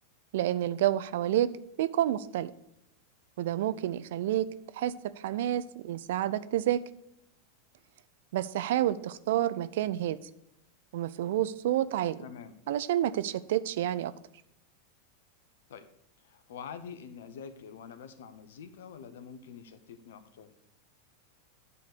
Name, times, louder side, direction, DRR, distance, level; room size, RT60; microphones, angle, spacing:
voice 1, 0.3-1.5 1.8-2.5 3.4-4.5 4.7-6.8 8.3-10.2 10.9-12.2 12.7-14.1, right 12 dB, 65° right, 15 dB, 0.4 m, -29 dB
voice 2, 12.2-12.6 15.7-15.9 16.2-20.5, left 7 dB, 70° left, 12 dB, 0.8 m, -46 dB
9.8 x 4.0 x 6.7 m, 0.78 s
hypercardioid pair, 95°, 0 cm